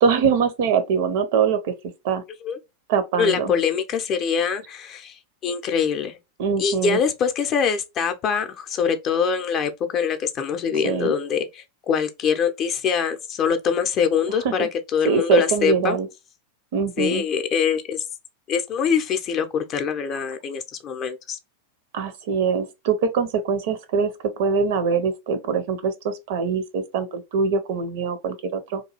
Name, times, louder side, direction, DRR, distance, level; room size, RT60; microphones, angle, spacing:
voice 1, 0.0-1.7 2.0-2.2 2.9-3.5 6.4-7.0 10.8-11.1 14.4-14.7 15.0-16.1 16.7-17.2 21.9-24.1 24.4-28.8, right 6 dB, 50° right, 0.5 m, -23 dB
voice 2, 3.2-6.2 6.6-16.0 17.0-18.0 18.5-21.4, left 6 dB, 35° left, 0.5 m, -24 dB
2.9 x 2.3 x 2.9 m
figure-of-eight pair, 90°, 0 cm